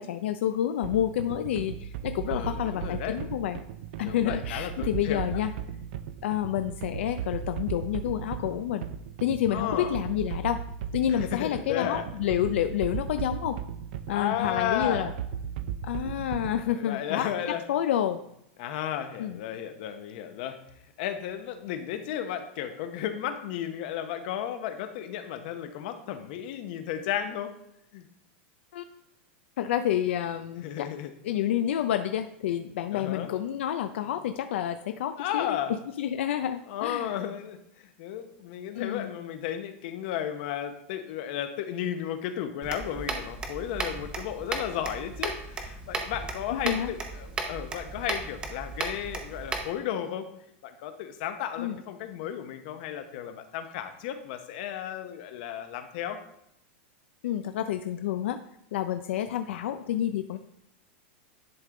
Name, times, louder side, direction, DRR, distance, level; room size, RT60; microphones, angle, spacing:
voice 1, 0.0-3.6 4.0-5.5 6.2-8.8 9.2-10.6 10.9-13.6 14.1-15.1 15.8-17.3 17.7-18.2 19.2-19.4 28.7-28.8 29.6-30.9 31.2-35.6 36.0-37.1 38.7-39.1 46.5-46.9 51.6-51.8 57.2-58.4 58.7-60.4, left 11 dB, 70° left, 8 dB, 0.4 m, -29 dB
sound 1, 0.8-16.7, right 8 dB, 50° right, 0.4 m, -37 dB
voice 2, 2.3-3.2 4.0-5.4 9.5-9.9 11.1-12.1 14.1-15.1 16.7-17.6 18.6-20.6 21.0-27.5 27.9-28.1 30.6-31.1 32.9-33.3 35.2-35.7 36.7-50.3 50.6-56.2 60.3-60.4, left 10 dB, 45° left, 8 dB, 0.8 m, -34 dB
sound 2, 42.6-49.7, right 3 dB, 15° right, 0.7 m, -35 dB
10.5 x 3.6 x 3.7 m, 0.79 s
supercardioid pair, 170°, 7 cm